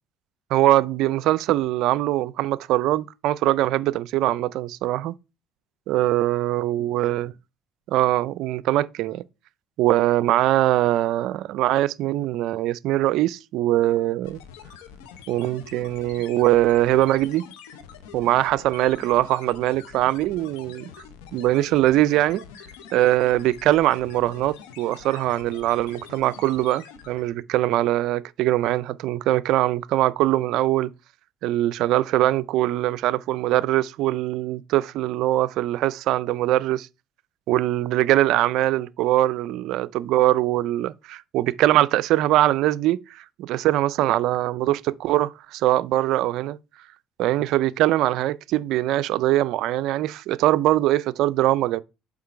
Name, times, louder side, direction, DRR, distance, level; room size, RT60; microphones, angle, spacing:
voice 1, 0.5-5.1 5.9-7.3 7.9-9.2 9.8-14.4 15.3-17.4 18.1-20.9 21.3-22.4 22.9-30.9 31.4-36.9 37.5-46.6 47.2-51.8, right 15 dB, 70° right, 0.4 m, -22 dB
sound 1, 14.2-27.4, left 7 dB, 85° left, 0.9 m, -45 dB
7.3 x 3.8 x 4.5 m
supercardioid pair, 85°, 0 cm